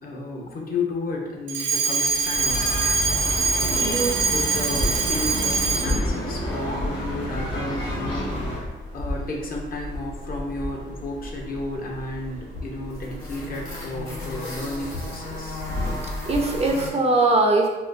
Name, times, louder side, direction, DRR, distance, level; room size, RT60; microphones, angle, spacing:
voice 1, 0.0-2.7 3.3-15.6, left 2 dB, 50° left, 0 dB, 0.7 m, -33 dB
Alarm, 1.5-6.1, right 4 dB, 80° right, 0.6 m, -24 dB
sound 1, 2.3-8.6, equal, 70° left, 1.3 m, -30 dB
voice 2, 3.7-4.2 16.2-17.7, right 2 dB, 30° right, 1 dB, 0.5 m, -21 dB
sound 2, 4.7-16.9, left 1 dB, 90° left, 1.0 m, -33 dB
3.7 x 2.4 x 2.6 m, 1.1 s
cardioid pair, 90°, 20 cm